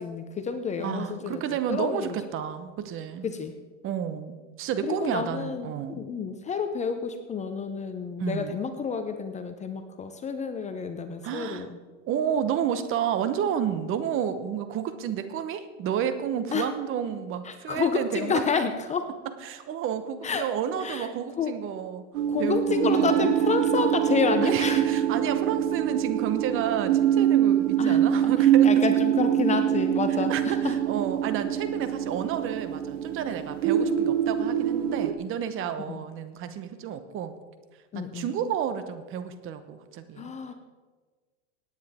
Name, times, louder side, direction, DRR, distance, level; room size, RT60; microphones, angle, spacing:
voice 1, 0.0-1.4 1.7-2.2 3.2-3.5 4.8-11.8 16.5-16.6 17.4-19.1 20.2-20.5 20.8-21.1 21.4-21.6 22.3-24.8 27.8-28.0 28.4-30.8 35.9-36.0 37.9-38.3 40.2-40.5, left 5 dB, 20° left, 8 dB, 0.7 m, -29 dB
voice 2, 0.8-3.3 3.8-6.0 8.2-8.6 11.2-11.7 12.1-18.4 19.4-23.3 24.4-29.0 30.3-37.3 37.9-40.3, right 8 dB, 35° right, 10 dB, 1.0 m, -31 dB
sound 1, 22.1-35.1, right 10 dB, 70° right, 1.0 m, -24 dB
17.5 x 9.2 x 3.6 m, 1.4 s
hypercardioid pair, 120°, 38 cm